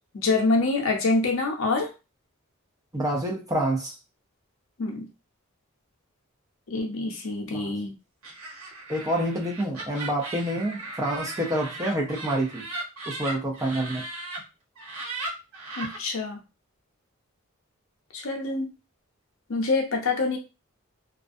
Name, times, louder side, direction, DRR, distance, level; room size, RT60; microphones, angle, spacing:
voice 1, 0.1-1.9 4.8-5.1 6.7-7.9 15.8-16.4 18.1-18.7 19.5-20.4, left 3 dB, 65° left, 2 dB, 0.6 m, -26 dB
voice 2, 2.9-3.9 7.5-7.7 8.9-12.7 13.1-14.0, right 1 dB, 15° right, 0 dB, 0.5 m, -27 dB
Laughter, 8.2-14.4 14.8-16.0, right 2 dB, 90° right, 1.0 m, -37 dB
2.4 x 2.1 x 2.5 m, 0.28 s
head